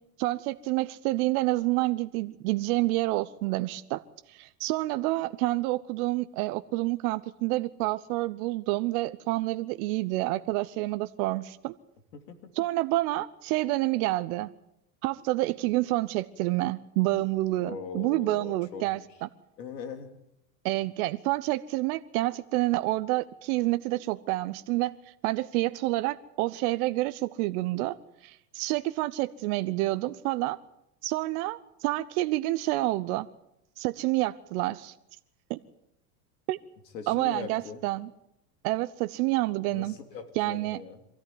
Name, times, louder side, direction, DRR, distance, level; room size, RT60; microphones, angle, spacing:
voice 1, 0.2-4.0 4.3-11.7 12.5-14.5 15.0-19.3 20.6-24.9 25.2-28.0 28.2-30.6 31.0-33.3 33.8-34.9 35.5-35.6 36.5-36.6 37.1-38.1 38.6-40.0 40.4-40.8, right 18 dB, 60° right, 12 dB, 0.9 m, -28 dB
voice 2, 12.1-12.5 17.6-18.8 19.6-20.1 36.9-37.8 39.7-41.0, left 6 dB, 85° left, 8 dB, 3.1 m, -40 dB
23.5 x 14.5 x 9.3 m, 0.81 s
hypercardioid pair, 100°, 49 cm